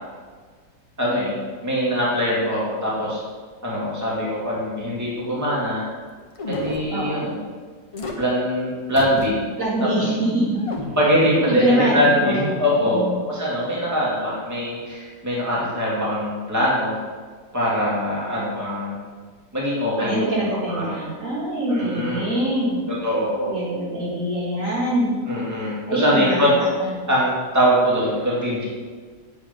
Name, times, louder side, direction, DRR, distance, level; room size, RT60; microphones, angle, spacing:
voice 1, 1.0-1.4 1.6-3.2 3.6-5.9 6.5-7.4 8.2-9.4 11.0-17.0 17.5-19.0 19.5-20.9 21.7-22.3 22.9-23.5 25.3-26.5 27.1-28.6, equal, 10° right, -6 dB, 2.3 m, -22 dB
sound 1, 6.3-6.9 7.9-8.1 8.9-9.3 9.7-9.8 10.5-11.1, left 2 dB, 30° left, 0.6 m, -31 dB
voice 2, 6.9-7.3 9.6-10.6 11.5-13.2 20.0-22.8 23.4-25.2 25.6-26.9, right 1 dB, 45° right, -7 dB, 2.6 m, -24 dB
8.5 x 6.8 x 5.3 m, 1.5 s
omnidirectional pair, 1.9 m